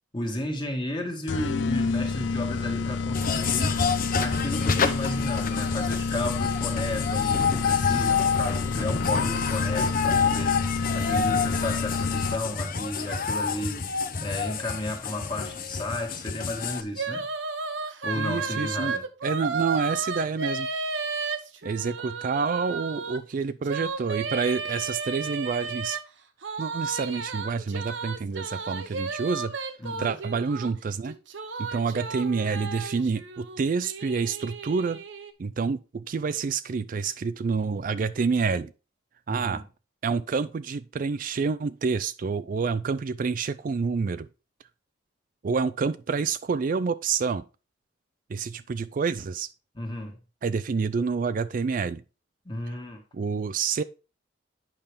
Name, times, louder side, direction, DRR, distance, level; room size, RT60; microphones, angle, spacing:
voice 1, 0.1-3.8 4.2-17.3 18.0-19.1 29.8-30.2 39.3-39.6 49.7-50.2 52.5-53.0, left 1 dB, 25° left, 1.7 m, -33 dB
sound 1, 1.3-12.7, left 4 dB, 75° left, 0.4 m, -29 dB
sound 2, 3.1-16.8, left 5 dB, 50° left, 0.8 m, -28 dB
sound 3, 17.0-23.2 23.6-26.0 26.4-30.7 31.1-35.3, right 4 dB, 85° right, 1.0 m, -33 dB
voice 2, 18.1-18.9 19.2-20.7 21.6-26.0 26.6-29.5 30.0-31.1 31.6-35.0 35.4-38.7 39.3-39.6 40.0-44.3 45.4-47.4 48.3-49.5 50.4-52.0 53.1-53.8, right 5 dB, 45° right, 0.4 m, -28 dB
8.8 x 5.8 x 3.4 m
head